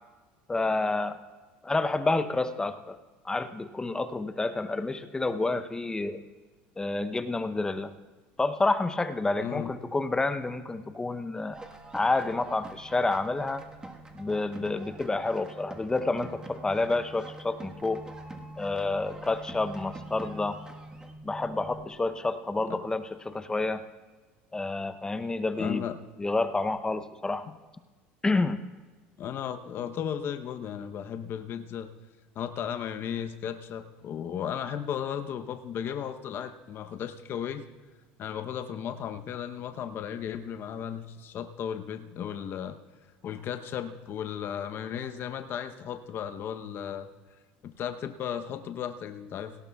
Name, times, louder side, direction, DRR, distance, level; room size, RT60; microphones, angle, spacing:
voice 1, 0.5-1.2 1.6-3.0 3.2-6.2 6.8-7.9 8.4-11.6 11.9-13.6 14.1-18.0 18.6-20.6 21.2-23.8 24.5-25.9 26.2-27.5 28.2-28.6, left 3 dB, 15° left, 11 dB, 0.7 m, -29 dB
voice 2, 9.4-9.7 22.7-22.8 25.6-26.0 29.2-31.9 32.4-37.6 38.2-42.8 43.2-47.1 47.6-49.6, left 8 dB, 50° left, 8 dB, 0.8 m, -35 dB
sound 1, 11.5-21.1, right 2 dB, 15° right, 1.4 m, -47 dB
sound 2, 11.5-21.9, right 1 dB, 75° right, 2.2 m, -48 dB
18.0 x 16.5 x 2.3 m, 1.4 s
supercardioid pair, 100°, 5 cm